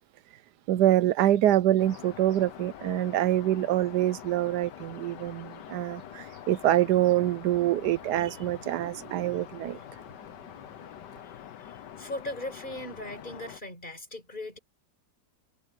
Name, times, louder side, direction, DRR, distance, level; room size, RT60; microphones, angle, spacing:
voice 1, 0.7-9.8, right 13 dB, 75° right, 1.1 m, -25 dB
sound 1, 1.8-13.6, left 10 dB, 70° left, 1.6 m, -45 dB
voice 2, 11.6-14.6, left 1 dB, 25° left, 5.3 m, -39 dB
omnidirectional pair, 2.0 m